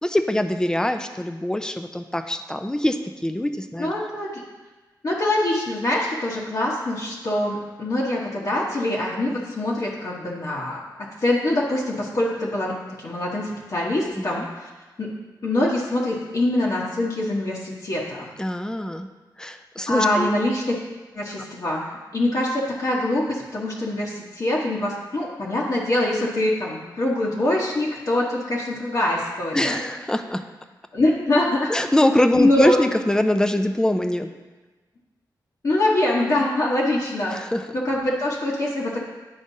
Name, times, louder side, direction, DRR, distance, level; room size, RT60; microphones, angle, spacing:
voice 1, 0.0-3.9 14.2-14.5 18.4-19.1 19.4-20.3 29.5-30.4 31.7-34.3 37.3-37.7, left 1 dB, 10° left, 7 dB, 0.4 m, -23 dB
voice 2, 3.8-4.4 5.0-10.8 11.2-12.7 13.0-14.7 15.0-15.1 15.4-18.3 19.9-20.7 21.1-29.8 30.9-31.7 32.4-32.8 35.6-37.4 37.7-39.0, left 1 dB, 50° left, -5 dB, 1.1 m, -24 dB
9.8 x 5.0 x 2.7 m, 1.2 s
wide cardioid pair, 100°, 8 cm